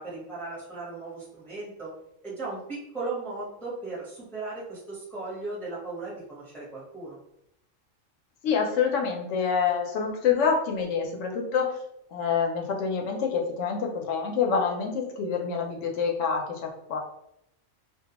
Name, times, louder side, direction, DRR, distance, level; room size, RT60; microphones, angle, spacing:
voice 1, 0.0-1.9 2.2-7.2, right 3 dB, ahead, -6 dB, 0.7 m, -37 dB
voice 2, 8.4-11.7 12.1-17.0, left 6 dB, 75° left, 1 dB, 0.9 m, -27 dB
2.3 x 2.3 x 2.8 m, 0.76 s
omnidirectional pair, 1.3 m